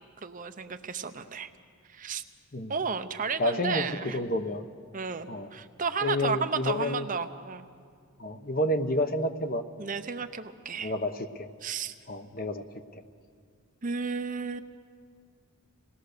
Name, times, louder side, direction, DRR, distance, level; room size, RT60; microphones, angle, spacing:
voice 1, 0.0-1.5 1.9-2.2 2.7-4.2 4.9-7.7 9.8-10.9 11.6-11.9 13.8-14.6, right 5 dB, 35° right, 9 dB, 0.7 m, -33 dB
voice 2, 3.4-3.9 4.1-4.6 5.3-5.5 6.0-7.1 8.2-9.6 10.8-11.5 12.1-12.6 12.9-13.0, left 1 dB, 40° left, 8 dB, 1.0 m, -29 dB
26.5 x 19.0 x 6.7 m, 2.1 s
head